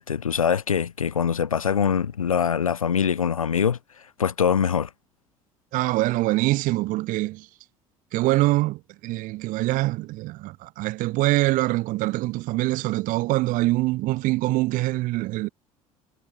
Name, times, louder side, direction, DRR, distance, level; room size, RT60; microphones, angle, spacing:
voice 1, 0.0-3.8 4.2-4.9, left 7 dB, 80° left, 0.8 m, -23 dB
voice 2, 5.7-7.5 8.1-15.5, right 19 dB, 50° right, 0.8 m, -24 dB
figure-of-eight pair, 60°, 18 cm